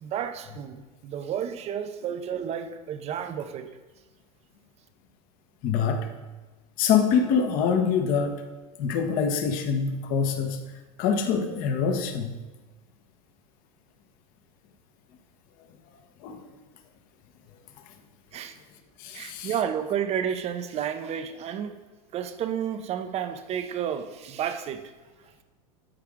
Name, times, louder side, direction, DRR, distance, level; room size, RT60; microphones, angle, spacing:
voice 1, 0.0-3.8 18.3-18.5 19.1-21.8 22.1-24.9, right 8 dB, 35° right, 0.8 m, -31 dB
voice 2, 5.6-6.1 6.8-8.4 8.8-10.6 11.0-12.3 16.2-16.4 19.0-19.5, left 6 dB, 50° left, 1.2 m, -25 dB
13.0 x 4.8 x 3.7 m
hypercardioid pair, 115°, 19 cm